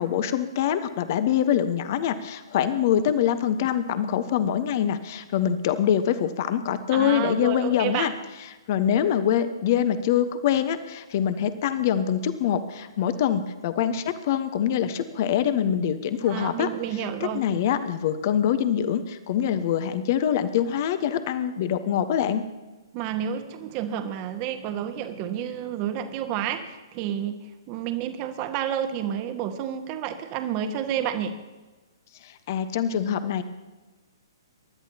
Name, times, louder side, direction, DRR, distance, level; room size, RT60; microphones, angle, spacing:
voice 1, 0.0-8.1 8.7-16.7 17.2-22.4 32.2-33.4, left 9 dB, 40° left, 11 dB, 1.1 m, -24 dB
voice 2, 6.9-8.1 16.3-17.4 22.9-31.4, right 9 dB, 30° right, 7 dB, 1.4 m, -30 dB
28.5 x 13.0 x 2.9 m, 1.2 s
figure-of-eight pair, 120°, 2 cm